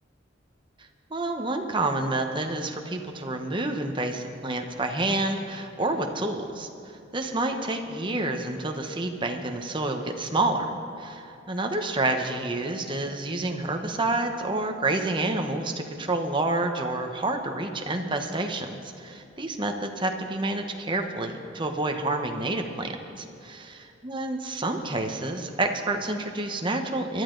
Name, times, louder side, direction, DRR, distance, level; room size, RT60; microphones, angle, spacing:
voice 1, 1.1-6.7 7.1-10.6 11.0-15.7 16.0-27.2, right 2 dB, 25° right, 4 dB, 1.0 m, -28 dB
21.5 x 12.5 x 3.9 m, 2.6 s
head